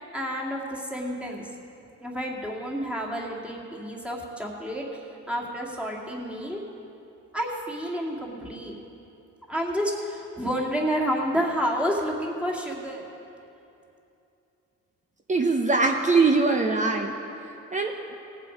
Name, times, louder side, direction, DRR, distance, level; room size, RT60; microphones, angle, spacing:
voice 1, 0.1-1.5 2.0-5.0 5.3-6.6 7.3-8.7 9.5-13.0, equal, 5° right, -2 dB, 2.1 m, -29 dB
voice 2, 15.3-17.1 17.7-18.0, right 3 dB, 25° right, 3 dB, 0.7 m, -22 dB
18.5 x 7.5 x 5.2 m, 2.8 s
cardioid pair, 90°, 30 cm